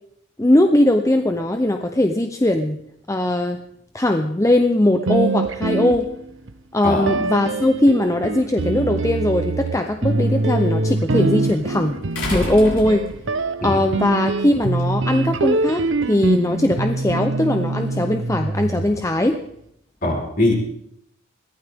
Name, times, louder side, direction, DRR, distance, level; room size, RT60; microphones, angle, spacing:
voice 1, 0.4-2.8 3.1-3.6 3.9-6.1 6.7-12.0 12.3-13.0 13.6-19.4, left 1 dB, 15° left, 6 dB, 0.6 m, -19 dB
sound 1, 5.0-6.5 7.0-19.3, right 2 dB, 65° right, 0.8 m, -24 dB
sound 2, 8.9-9.0 12.1-13.4 14.8-14.9, left 1 dB, 65° left, 5.2 m, -28 dB
voice 2, 20.0-20.5, left 2 dB, 45° left, 1 dB, 4.1 m, -21 dB
21.5 x 15.0 x 3.6 m, 0.72 s
head